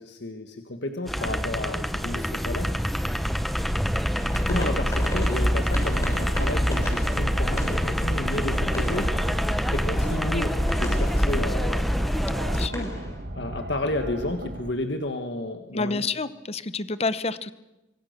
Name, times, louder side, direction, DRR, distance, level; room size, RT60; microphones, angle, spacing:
voice 1, 0.0-2.7 4.3-9.1 9.7-11.9 13.3-16.0, left 2 dB, 75° left, 6 dB, 1.7 m, -32 dB
sound 1, 1.1-12.7, equal, ahead, 0.9 m, -25 dB
sound 2, 4.1-13.2, equal, 20° left, 7.1 m, -38 dB
sound 3, 4.5-14.7, right 1 dB, 60° right, 1.4 m, -37 dB
voice 2, 12.5-12.9 15.7-17.5, left 3 dB, 35° left, 14 dB, 1.0 m, -29 dB
26.0 x 23.5 x 6.8 m, 0.96 s
head